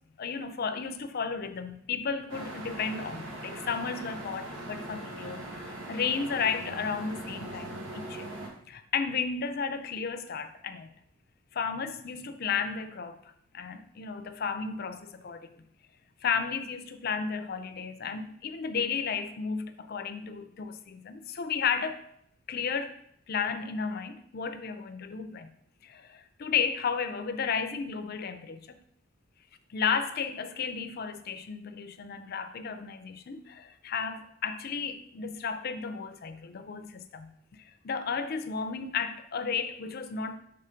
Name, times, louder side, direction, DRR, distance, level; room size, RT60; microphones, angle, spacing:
voice 1, 0.2-8.3 8.7-10.9 11.5-15.6 16.2-22.1 22.5-23.0 23.3-25.5 25.8-28.8 29.7-37.3 37.6-40.4, left 6 dB, 50° left, 0.5 m, -33 dB
sound 1, 2.3-8.5, right 1 dB, 85° right, 1.3 m, -40 dB
5.6 x 3.9 x 5.0 m
head